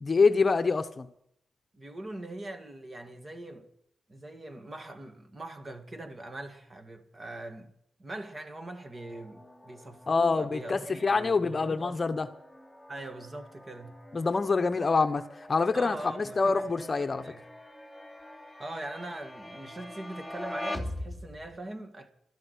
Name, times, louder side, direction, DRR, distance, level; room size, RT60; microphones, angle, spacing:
voice 1, 0.0-1.1 10.1-12.3 14.1-15.2 15.5-17.2, left 4 dB, 35° left, 0.9 m, -26 dB
voice 2, 1.7-3.7 4.1-7.7 8.0-12.0 12.9-14.0 15.7-17.4 18.6-22.1, right 1 dB, 30° right, 2.0 m, -42 dB
sound 1, 8.9-21.6, left 1 dB, 10° right, 2.6 m, -44 dB
13.0 x 11.0 x 8.3 m
cardioid pair, 85°, 0 cm